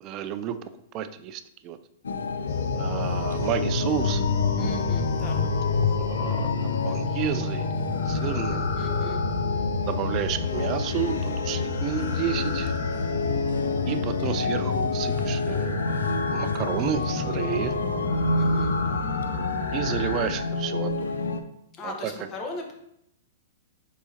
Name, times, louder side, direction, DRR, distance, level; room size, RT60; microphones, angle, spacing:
voice 1, 0.0-0.6 0.9-1.8 2.7-4.3 5.9-7.7 8.1-8.7 9.8-12.7 13.9-15.8 16.3-17.7 19.7-21.1 21.8-22.1, right 10 dB, 40° right, 11 dB, 0.3 m, -31 dB
sound 1, 2.0-21.4, left 3 dB, 85° left, 0.4 m, -29 dB
sound 2, 2.5-20.4, left 4 dB, 55° left, 0.8 m, -30 dB
voice 2, 4.6-5.4 8.8-9.2 18.3-18.7 21.8-22.7, left 2 dB, 30° left, 2 dB, 1.0 m, -38 dB
4.6 x 4.0 x 2.8 m, 0.77 s
hypercardioid pair, 115°, 0 cm